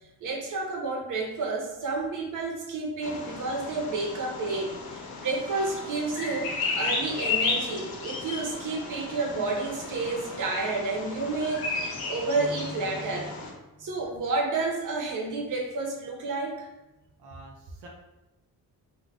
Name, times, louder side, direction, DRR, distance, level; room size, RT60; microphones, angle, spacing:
voice 1, 0.2-11.7 12.1-13.3 13.8-16.7, right 3 dB, 55° right, -1 dB, 0.9 m, -30 dB
Bird vocalization bird call bird song, 3.0-13.5, left 4 dB, 70° left, 0.7 m, -34 dB
voice 2, 17.2-17.9, right 2 dB, 90° right, -1 dB, 0.6 m, -45 dB
2.4 x 2.4 x 3.6 m, 0.99 s
cardioid pair, 95°, 38 cm